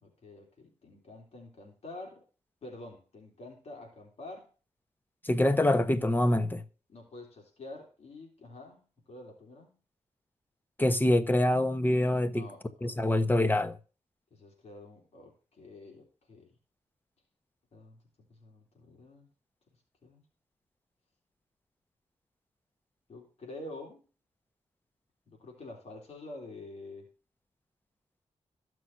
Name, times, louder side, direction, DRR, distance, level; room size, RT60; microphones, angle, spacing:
voice 1, 0.0-2.2 2.6-4.5 6.9-9.8 12.3-13.2 14.3-16.5 17.7-18.0 18.3-19.3 20.0-20.2 23.1-24.0 25.3-27.1, left 2 dB, 65° left, 3.3 m, -48 dB
voice 2, 5.2-6.6 10.8-12.5 12.8-13.8, left 1 dB, 15° left, 1.1 m, -25 dB
14.5 x 6.2 x 2.7 m
cardioid pair, 80°, 12 cm